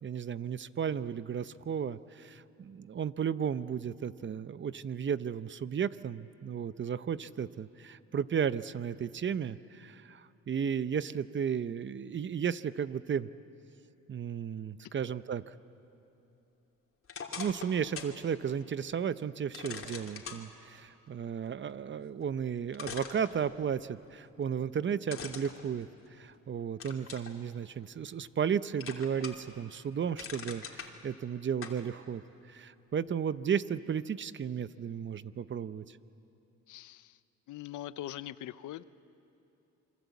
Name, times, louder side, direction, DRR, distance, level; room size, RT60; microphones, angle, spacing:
voice 1, 0.0-13.3 14.1-15.5 17.4-32.2 32.5-36.0, right 7 dB, 40° right, 15 dB, 0.7 m, -34 dB
sound 1, 17.1-18.2 18.6-18.7 19.5-20.4 22.2-22.3 22.7-23.8 25.1-26.4 26.8-27.3 27.8-28.5 28.8-29.5 29.9-30.9 31.6-31.8, left 6 dB, 45° left, 2.9 m, -42 dB
voice 2, 36.7-37.2 37.5-38.8, left 13 dB, 80° left, 15 dB, 0.8 m, -42 dB
27.0 x 23.5 x 8.3 m, 2.9 s
cardioid pair, 90°, 30 cm